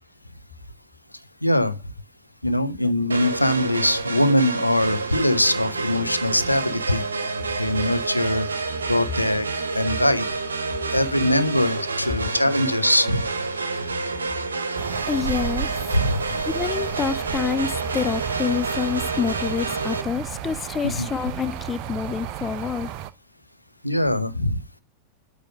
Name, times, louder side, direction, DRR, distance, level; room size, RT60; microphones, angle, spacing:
voice 1, 1.4-1.8 2.4-7.0 7.6-8.5 8.9-9.5 9.7-10.3 10.9-13.3 15.9-16.2 20.8-21.1 23.8-24.6, left 1 dB, 85° left, 0.7 m, -22 dB
sound 1, 3.1-20.0, right 3 dB, 75° right, 1.0 m, -28 dB
sound 2, 14.8-23.1, right 9 dB, 40° right, 0.6 m, -33 dB
voice 2, 15.1-15.7 16.5-22.9, left 7 dB, 20° left, 0.4 m, -27 dB
8.8 x 3.4 x 6.1 m
figure-of-eight pair, 90°, 0 cm